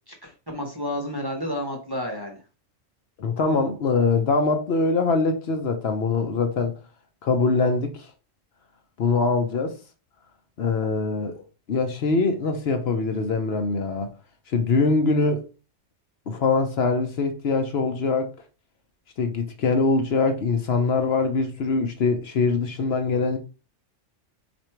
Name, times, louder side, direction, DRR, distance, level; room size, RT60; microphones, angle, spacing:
voice 1, 0.1-2.4, left 1 dB, 20° right, 0.7 m, -31 dB
voice 2, 3.2-6.7 7.2-8.1 9.0-9.7 10.6-11.4 11.7-14.1 14.5-15.4 16.3-18.3 19.2-23.4, left 4 dB, 60° left, 0.9 m, -23 dB
4.3 x 2.6 x 4.4 m
omnidirectional pair, 1.3 m